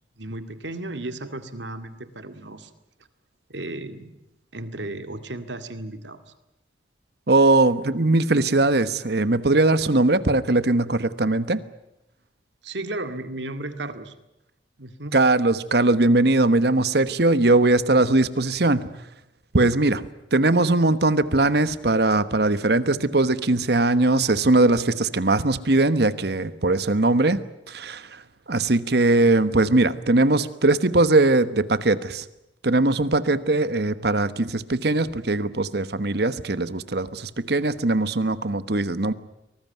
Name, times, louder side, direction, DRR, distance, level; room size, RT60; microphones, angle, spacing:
voice 1, 0.2-2.7 3.5-4.1 4.5-6.2 12.6-14.1 14.8-15.2, right 2 dB, 75° right, 9 dB, 2.1 m, -34 dB
voice 2, 7.3-11.6 15.1-18.9 19.5-27.4 27.7-28.2 28.5-32.2 32.6-39.1, right 2 dB, 60° right, 14 dB, 1.2 m, -20 dB
24.0 x 19.5 x 9.3 m, 0.90 s
head